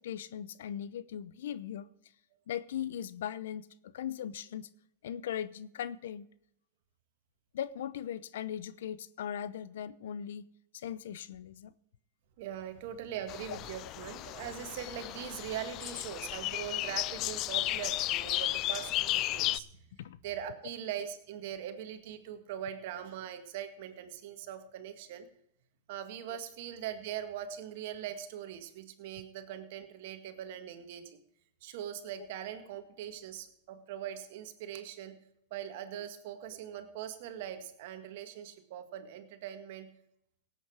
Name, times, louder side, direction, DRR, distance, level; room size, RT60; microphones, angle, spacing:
voice 1, 0.0-1.9 2.5-4.7 5.0-6.3 7.5-10.5 10.7-11.7 13.5-13.6 20.0-20.2 26.3-26.4 32.2-32.3 35.9-36.1, left 9 dB, 75° left, 17 dB, 0.7 m, -39 dB
voice 2, 12.4-19.7 20.2-25.3 25.9-31.2 31.6-35.2 35.5-39.9, right 10 dB, 65° right, 8 dB, 1.8 m, -41 dB
sound 1, 13.3-19.6, left 16 dB, 45° left, 0.4 m, -34 dB
17.5 x 8.6 x 4.8 m, 0.77 s
hypercardioid pair, 115°, 0 cm